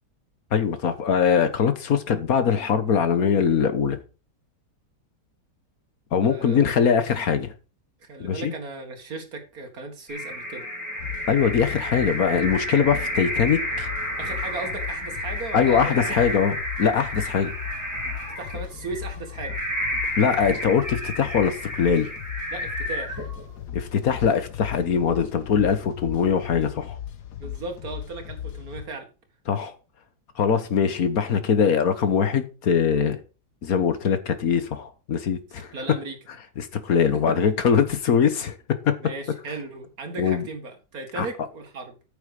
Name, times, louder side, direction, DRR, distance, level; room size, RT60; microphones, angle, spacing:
voice 1, 0.5-4.0 6.1-7.5 8.2-8.5 11.3-13.9 15.5-17.5 20.2-22.1 23.7-27.0 29.5-29.7 30.4-33.2 33.6-35.7 36.6-39.0 40.2-40.4 41.2-41.3, left 7 dB, 60° left, 1.7 m, -22 dB
voice 2, 6.2-6.7 8.0-10.7 14.2-16.2 18.4-19.6 22.5-23.3 27.4-29.1 35.7-36.2 37.3-37.4 39.0-41.9, right 3 dB, 60° right, 2.4 m, -36 dB
sound 1, 10.1-23.6, equal, 10° right, 4.1 m, -31 dB
sound 2, 11.0-28.9, left 10 dB, 80° left, 1.6 m, -37 dB
9.2 x 7.3 x 4.9 m
omnidirectional pair, 1.8 m